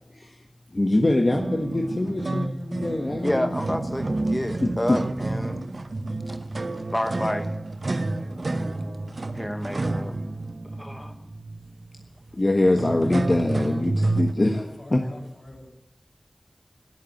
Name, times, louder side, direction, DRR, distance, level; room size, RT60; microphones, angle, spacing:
voice 1, 0.7-3.5 4.6-5.0 12.3-14.6 14.9-15.0, left 2 dB, 45° left, 2 dB, 1.4 m, -23 dB
sound 1, 1.3-14.3, right 2 dB, 65° right, 0.8 m, -29 dB
voice 2, 3.2-5.7 6.9-7.5 8.1-8.3 9.3-10.2 10.7-11.1, left 1 dB, 15° left, 7 dB, 0.9 m, -29 dB
voice 3, 14.4-15.7, left 1 dB, 80° left, -1 dB, 6.7 m, -44 dB
13.0 x 11.0 x 9.2 m, 0.86 s
wide cardioid pair, 65°, 0 cm